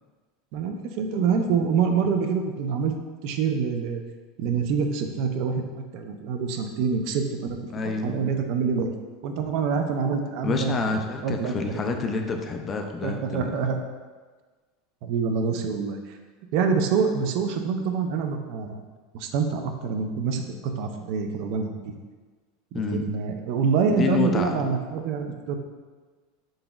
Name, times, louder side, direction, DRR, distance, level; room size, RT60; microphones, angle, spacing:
voice 1, 0.5-2.9 3.2-4.0 4.4-5.6 5.9-7.6 7.8-8.9 9.2-10.9 11.2-11.8 13.0-13.8 15.0-16.2 16.5-18.8 19.1-21.9 22.7-25.6, right 5 dB, 60° right, 5 dB, 0.4 m, -26 dB
voice 2, 7.7-8.1 10.4-13.6 22.7-23.2 24.0-24.7, left 4 dB, 25° left, 4 dB, 0.3 m, -28 dB
3.9 x 3.8 x 2.3 m, 1.4 s
supercardioid pair, 140°, 0 cm